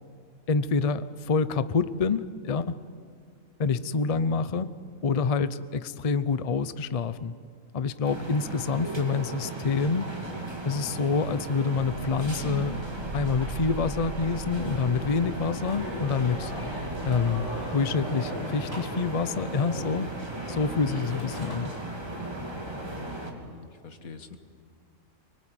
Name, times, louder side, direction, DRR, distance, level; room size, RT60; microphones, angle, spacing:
voice 1, 0.5-2.8 3.6-4.7 5.0-7.3 7.7-10.1 10.6-12.8 13.1-16.5 17.0-20.1 20.5-21.7, left 4 dB, 35° left, 13 dB, 0.6 m, -27 dB
sound 1, 8.0-23.3, right 1 dB, 20° right, 2.8 m, -36 dB
sound 2, 11.8-17.9, right 2 dB, 45° right, 2.7 m, -41 dB
sound 3, 15.6-21.6, left 1 dB, 15° left, 5.3 m, -39 dB
voice 2, 23.3-24.4, left 5 dB, 85° left, 8 dB, 2.0 m, -46 dB
25.0 x 24.0 x 9.2 m, 2.2 s
omnidirectional pair, 1.4 m